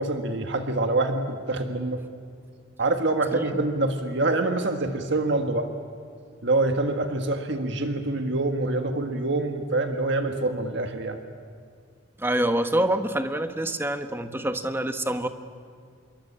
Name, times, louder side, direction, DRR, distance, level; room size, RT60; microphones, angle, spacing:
voice 1, 0.0-2.0 2.8-5.7 6.4-11.2, right 2 dB, 60° right, 5 dB, 1.6 m, -25 dB
voice 2, 12.2-15.3, right 1 dB, 10° right, 8 dB, 1.2 m, -26 dB
27.5 x 23.0 x 8.7 m, 2.3 s
head